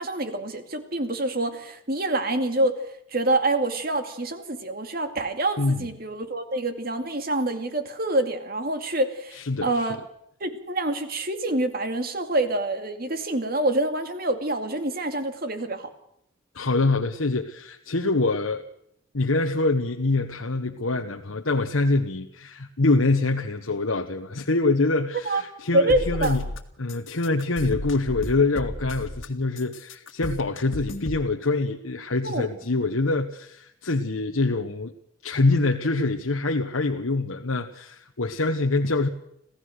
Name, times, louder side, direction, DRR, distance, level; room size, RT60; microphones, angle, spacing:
voice 1, 0.0-2.7 3.1-10.0 10.4-15.9 25.3-25.4 25.7-26.4 32.2-32.5, right 2 dB, 45° right, 7 dB, 2.4 m, -26 dB
voice 2, 9.3-9.9 16.5-18.6 19.1-26.4 26.8-34.9 35.2-39.1, left 3 dB, 90° left, 4 dB, 1.2 m, -25 dB
sound 1, 25.9-26.6 26.9-29.3 29.6-31.2, left 1 dB, 70° left, 1.9 m, -34 dB
26.5 x 16.0 x 6.6 m, 0.75 s
head